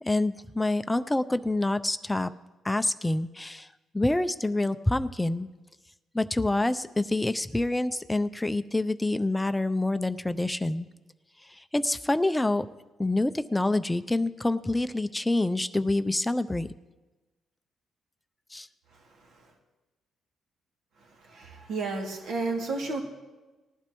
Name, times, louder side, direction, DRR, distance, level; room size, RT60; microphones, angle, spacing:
voice 1, 0.0-2.3 2.6-3.7 3.9-5.5 6.1-10.9 11.7-12.7 13.0-16.7 18.5-18.7, left 2 dB, 10° left, 11 dB, 0.4 m, -27 dB
voice 2, 21.2-23.0, right 3 dB, 70° right, 0 dB, 2.4 m, -32 dB
19.5 x 11.5 x 3.0 m, 1.2 s
cardioid pair, 90°, 0 cm